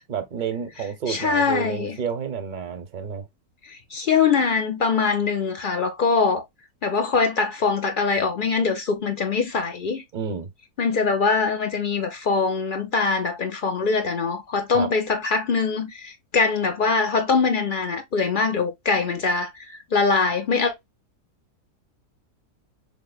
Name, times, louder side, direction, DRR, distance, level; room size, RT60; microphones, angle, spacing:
voice 1, 0.1-3.2 10.1-10.5 14.7-14.9, right 7 dB, 45° right, 0.6 m, -30 dB
voice 2, 1.1-2.0 3.6-6.4 6.8-10.0 10.8-20.7, left 4 dB, 55° left, 0.6 m, -23 dB
6.4 x 2.1 x 2.2 m
omnidirectional pair, 1.7 m